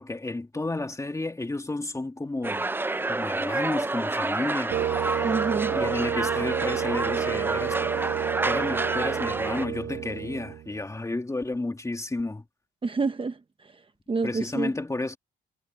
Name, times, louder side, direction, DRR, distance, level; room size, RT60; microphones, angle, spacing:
voice 1, 0.0-2.7 3.1-4.8 5.7-12.4 14.2-15.2, left 2 dB, 15° left, 2.7 m, -32 dB
sound 1, 2.4-9.7, right 2 dB, 10° right, 0.5 m, -29 dB
sound 2, 4.7-10.8, right 11 dB, 70° right, 1.2 m, -30 dB
voice 2, 5.2-5.8 12.8-13.8 14.1-14.7, right 4 dB, 25° right, 1.1 m, -28 dB
cardioid pair, 90°, 20 cm